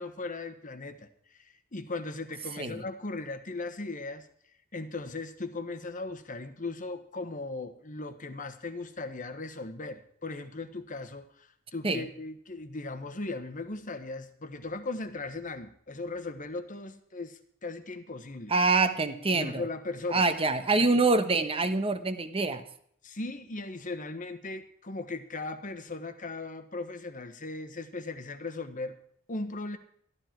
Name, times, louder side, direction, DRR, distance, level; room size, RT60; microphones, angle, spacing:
voice 1, 0.0-4.3 4.7-18.5 19.3-20.2 23.0-28.9 29.3-29.8, left 3 dB, 40° left, 9 dB, 1.3 m, -38 dB
voice 2, 18.5-19.6 20.1-22.6, right 3 dB, 25° right, 9 dB, 1.1 m, -25 dB
13.5 x 13.0 x 4.5 m, 0.65 s
head